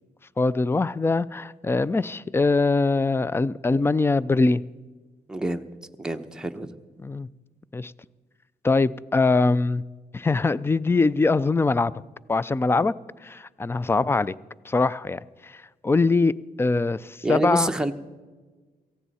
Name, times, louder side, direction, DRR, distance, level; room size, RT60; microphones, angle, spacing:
voice 1, 0.4-4.6 7.0-7.3 7.7-7.9 8.6-9.8 10.1-11.9 12.3-12.9 13.2-14.3 14.7-17.7, left 3 dB, 15° left, 19 dB, 0.3 m, -22 dB
voice 2, 5.3-5.6 6.0-6.7 17.2-17.9, right 1 dB, 5° right, 5 dB, 0.8 m, -27 dB
18.0 x 15.0 x 4.2 m, 1.3 s
cardioid pair, 115°, 16 cm